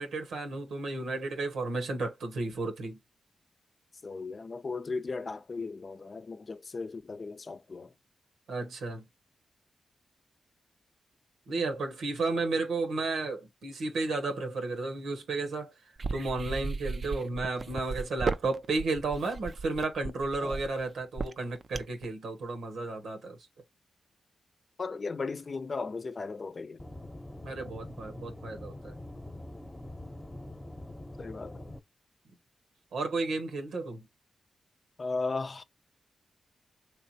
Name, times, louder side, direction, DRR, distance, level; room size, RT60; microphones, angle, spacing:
voice 1, 0.0-3.0 8.5-9.1 11.5-15.7 16.1-23.4 27.4-28.9 32.9-34.1, right 3 dB, 80° right, 0.9 m, -33 dB
voice 2, 4.0-7.9 20.4-20.6 24.8-26.8 31.2-31.6 35.0-35.6, left 4 dB, 50° left, 0.6 m, -36 dB
sound 1, 16.0-22.0, right 4 dB, 55° right, 0.4 m, -35 dB
Aircraft / Engine, 26.8-31.8, left 1 dB, 20° left, 0.9 m, -44 dB
3.3 x 3.2 x 2.8 m
supercardioid pair, 40°, 0 cm